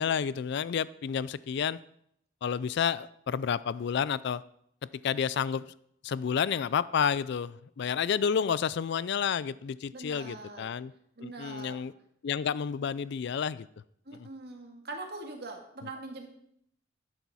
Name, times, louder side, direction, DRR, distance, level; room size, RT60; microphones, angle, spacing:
voice 1, 0.0-1.8 2.4-4.4 5.0-5.6 6.0-10.9 11.2-11.9 12.2-13.7 14.2-14.3, left 7 dB, 60° left, 19 dB, 0.4 m, -30 dB
voice 2, 9.9-10.7 11.2-11.8 14.1-16.3, right 2 dB, 55° right, 3 dB, 1.9 m, -42 dB
11.5 x 10.0 x 4.2 m, 0.71 s
head